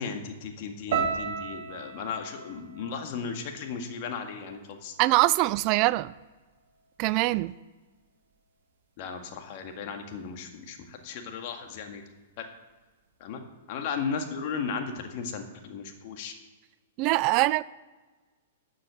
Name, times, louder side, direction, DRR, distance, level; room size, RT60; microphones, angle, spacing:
voice 1, 0.0-4.9 9.0-12.0 12.4-12.5 13.2-13.4 13.7-16.3, left 5 dB, 50° left, 1.9 m, -35 dB
sound 1, 0.9-5.1 5.4-6.2 6.7-7.0, right 6 dB, 60° right, 1.8 m, -36 dB
voice 2, 5.0-6.1 7.0-7.5 17.0-17.6, right 19 dB, 40° right, 0.3 m, -23 dB
12.5 x 7.6 x 6.3 m
hypercardioid pair, 115°, 0 cm